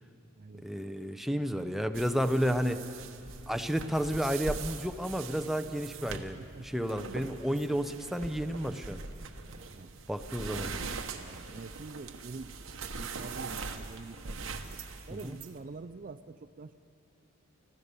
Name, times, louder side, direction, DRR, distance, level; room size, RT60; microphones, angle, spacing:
voice 1, 0.6-2.8 3.5-6.4 6.6-9.0 10.1-10.7 15.1-15.4, equal, ahead, 8 dB, 0.7 m, -31 dB
sound 1, 1.9-15.6, right 4 dB, 70° right, 1.2 m, -42 dB
voice 2, 6.1-6.7 7.0-7.3 9.7-9.9 10.4-12.6 12.8-14.8 15.1-16.7, right 3 dB, 40° right, 10 dB, 0.4 m, -46 dB
25.5 x 15.0 x 6.8 m, 2.8 s
head